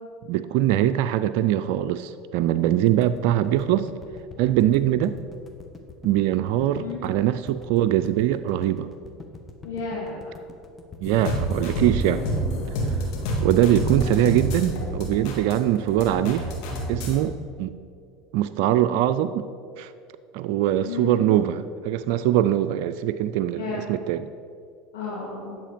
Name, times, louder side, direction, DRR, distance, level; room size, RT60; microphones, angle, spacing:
voice 1, 0.2-3.9 4.4-5.1 6.0-8.9 11.0-12.2 13.4-16.5 16.9-17.7 18.3-19.4 19.8-19.9 20.3-24.3, right 12 dB, 65° right, 10 dB, 0.4 m, -22 dB
sound 1, 2.9-15.0, left 4 dB, 20° left, 1.2 m, -44 dB
voice 2, 9.6-10.3 20.9-21.2 23.5-23.9 24.9-25.6, left 4 dB, 85° left, -9 dB, 2.5 m, -32 dB
sound 2, 11.0-17.2, equal, 60° left, 2.4 m, -28 dB
10.5 x 7.5 x 5.1 m, 2.3 s
hypercardioid pair, 95°, 0 cm